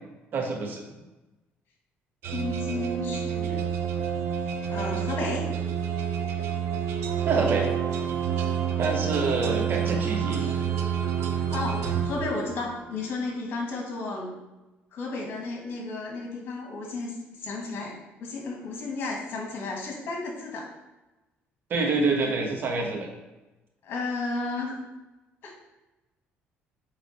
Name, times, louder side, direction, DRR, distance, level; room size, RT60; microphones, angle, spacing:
voice 1, 0.3-0.8 7.2-7.7 8.8-10.7 21.7-23.1, right 3 dB, 50° right, 1 dB, 1.5 m, -27 dB
voice 2, 2.2-3.6 4.7-5.5 11.3-14.3 14.9-17.9 18.2-20.7 23.8-24.8 25.4-25.6, left 3 dB, 60° left, -1 dB, 2.2 m, -33 dB
sound 1, 2.2-12.9, right 8 dB, 75° right, 0.8 m, -28 dB
8.8 x 3.7 x 4.4 m, 1.1 s
cardioid pair, 105°, 4 cm